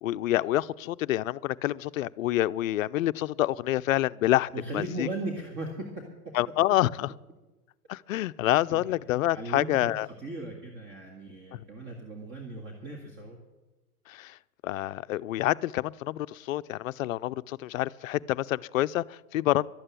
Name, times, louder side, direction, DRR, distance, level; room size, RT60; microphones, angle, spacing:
voice 1, 0.0-5.1 6.3-7.1 7.9-10.1 11.5-11.6 14.1-14.4 14.6-19.7, left 15 dB, 60° left, 16 dB, 0.5 m, -27 dB
voice 2, 4.5-5.9 8.7-8.8 9.3-13.4, right 2 dB, 25° right, 2 dB, 2.0 m, -37 dB
12.0 x 8.7 x 9.0 m, 1.1 s
hypercardioid pair, 120°, 45 cm